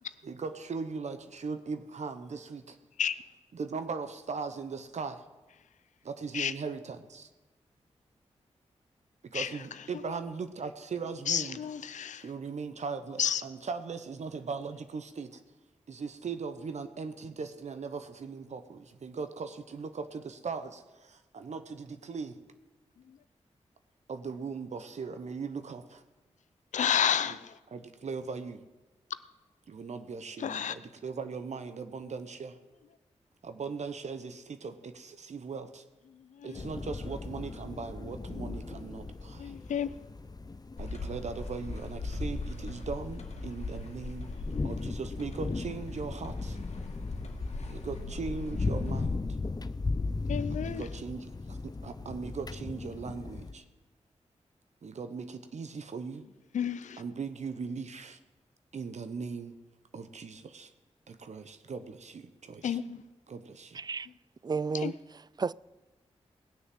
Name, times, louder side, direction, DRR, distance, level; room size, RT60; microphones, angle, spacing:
voice 1, 0.2-2.8 3.5-5.2 6.0-7.3 9.3-11.6 12.2-15.4 15.9-22.4 24.1-26.0 27.3-27.4 27.7-28.6 29.7-32.6 33.4-35.8 36.4-39.5 40.8-44.3 44.6-46.6 47.7-49.2 50.5-53.6 54.8-56.2 57.0-58.2 58.7-59.5 59.9-60.7 61.1-62.8 63.3-63.8, right 5 dB, 70° right, 0.9 m, -39 dB
voice 2, 11.3-12.2 13.2-13.4 26.7-27.5 30.4-30.8 36.4-36.6 39.4-39.9 50.3-50.8 56.5-57.0 62.6-63.0 64.8-64.9, left 8 dB, 90° left, 0.6 m, -30 dB
sound 1, 36.5-53.5, left 3 dB, 35° left, 0.6 m, -37 dB
sound 2, 40.8-49.0, left 3 dB, 65° left, 1.9 m, -39 dB
voice 3, 63.7-64.1 64.4-65.5, right 5 dB, 35° right, 0.3 m, -33 dB
19.0 x 6.6 x 7.7 m
cardioid pair, 45°, 12 cm